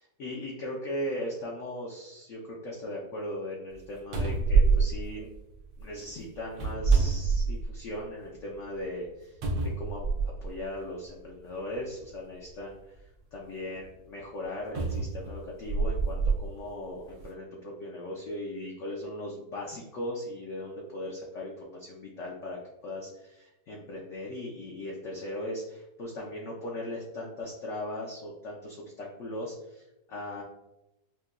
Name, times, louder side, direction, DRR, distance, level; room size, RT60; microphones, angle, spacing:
voice 1, 0.2-5.3 5.8-10.0 10.4-12.8 13.3-30.4, left 1 dB, 70° left, -2 dB, 0.7 m, -38 dB
sound 1, 3.7-3.8 4.1-5.8 6.5-7.9 8.4-8.5 9.4-10.5 11.5-11.6 14.7-16.4 17.1-17.2, right 4 dB, 85° right, 1.4 m, -26 dB
5.6 x 2.2 x 2.4 m, 0.91 s
omnidirectional pair, 2.0 m